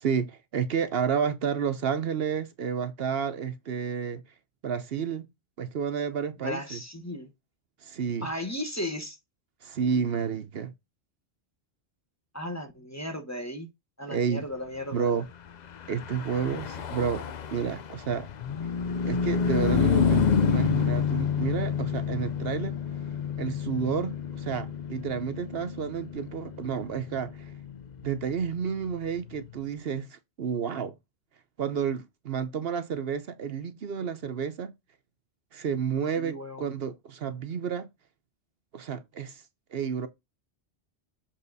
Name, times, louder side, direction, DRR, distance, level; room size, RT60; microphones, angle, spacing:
voice 1, 0.0-4.2 4.6-5.3 5.6-6.8 7.8-8.3 9.6-10.7 14.1-14.4 14.9-15.3 15.9-17.3 17.5-18.3 19.0-22.8 23.4-27.5 28.0-30.9 31.6-34.7 35.5-37.9 38.7-39.4 39.7-40.1, right 7 dB, 65° right, 1.0 m, -30 dB
voice 2, 6.4-7.3 8.2-9.2 12.3-13.7 14.0-15.1 35.7-35.8 36.2-36.7, left 1 dB, 15° left, 1.2 m, -35 dB
Car passing by / Truck, 15.6-29.4, left 7 dB, 50° left, 0.6 m, -29 dB
7.4 x 3.6 x 4.0 m
omnidirectional pair, 1.1 m